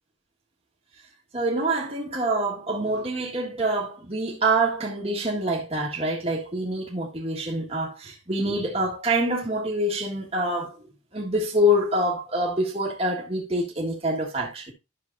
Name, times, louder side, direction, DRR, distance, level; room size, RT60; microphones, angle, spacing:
voice 1, 1.3-10.8 11.1-14.7, right 1 dB, 30° right, 1.6 m, -26 dB
11.0 x 6.6 x 2.6 m
head